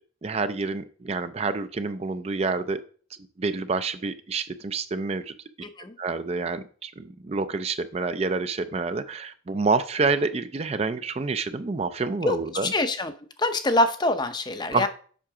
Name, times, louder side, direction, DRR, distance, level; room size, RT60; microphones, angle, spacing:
voice 1, 0.2-2.8 3.4-5.3 6.0-12.7 14.7-14.9, right 4 dB, 30° right, 11 dB, 0.4 m, -28 dB
voice 2, 5.6-5.9 12.2-14.9, left 2 dB, 20° left, 9 dB, 0.6 m, -25 dB
7.5 x 5.7 x 4.8 m, 0.44 s
head